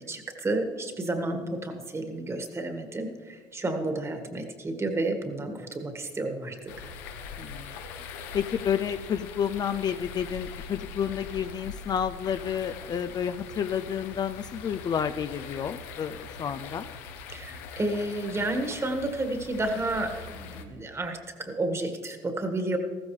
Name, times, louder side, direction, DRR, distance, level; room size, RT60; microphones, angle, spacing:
voice 1, 0.0-6.5 17.3-22.8, right 2 dB, 25° right, 5 dB, 1.7 m, -31 dB
voice 2, 1.2-1.6 7.4-8.1 8.3-16.9, left 8 dB, 40° left, 10 dB, 0.4 m, -30 dB
sound 1, 6.7-20.6, left 5 dB, 90° left, 1.0 m, -42 dB
14.5 x 14.0 x 3.2 m, 1.5 s
supercardioid pair, 90°, 11 cm